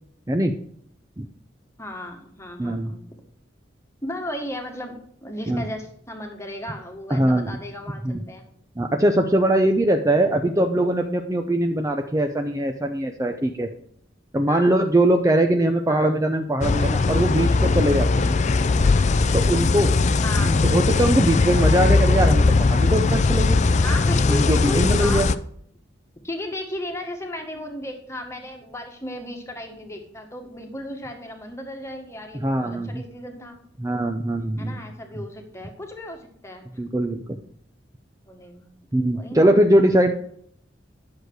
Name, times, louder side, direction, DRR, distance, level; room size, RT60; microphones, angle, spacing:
voice 1, 1.8-3.1 4.0-4.9 5.2-8.4 14.5-14.7 15.9-16.1 18.8-19.0 20.2-20.6 23.8-25.2 26.2-33.6 34.6-36.6 38.2-38.8 39.1-39.5, left 1 dB, 15° left, 3 dB, 1.6 m, -35 dB
voice 2, 2.6-2.9 5.5-5.6 7.1-7.5 8.0-8.2 8.8-13.7 14.3-18.4 19.3-19.9 20.4-23.6 24.3-25.3 32.3-33.0 33.8-34.7 36.8-37.4 38.9-40.1, right 1 dB, 20° right, 5 dB, 0.6 m, -21 dB
sound 1, 16.6-25.4, left 3 dB, 40° left, 0.4 m, -19 dB
10.5 x 6.6 x 4.7 m, 0.65 s
head